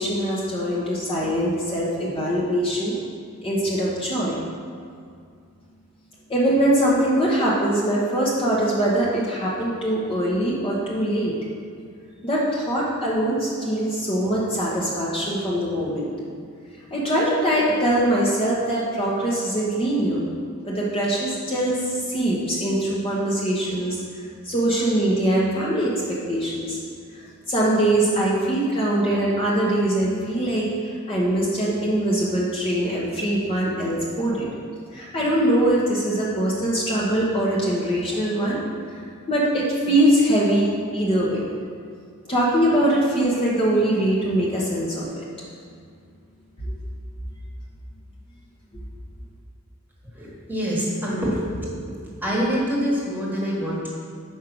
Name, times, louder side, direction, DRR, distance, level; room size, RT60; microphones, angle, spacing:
voice 1, 0.0-3.0 3.4-4.4 6.3-11.3 12.2-16.1 16.9-20.2 20.6-26.8 27.1-34.5 34.9-38.6 39.3-41.4 42.3-45.3 46.6-46.7, right 1 dB, 25° left, -6 dB, 0.9 m, -22 dB
voice 2, 50.1-51.7 52.2-53.9, equal, 10° right, -5 dB, 1.4 m, -25 dB
5.4 x 4.9 x 6.1 m, 2.2 s
head